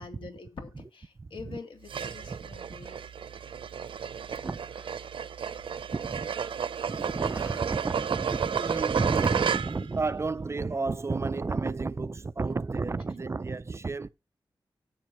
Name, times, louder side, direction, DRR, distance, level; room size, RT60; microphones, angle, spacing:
voice 1, 0.0-3.0, left 4 dB, 75° left, 2.7 m, -45 dB
sound 1, 1.9-10.0, right 7 dB, 85° right, 0.6 m, -32 dB
voice 2, 2.0-2.4 2.7-2.9 4.3-4.9 5.9-14.1, right 3 dB, 30° right, 0.5 m, -32 dB
14.0 x 7.7 x 3.0 m
wide cardioid pair, 100°, 9 cm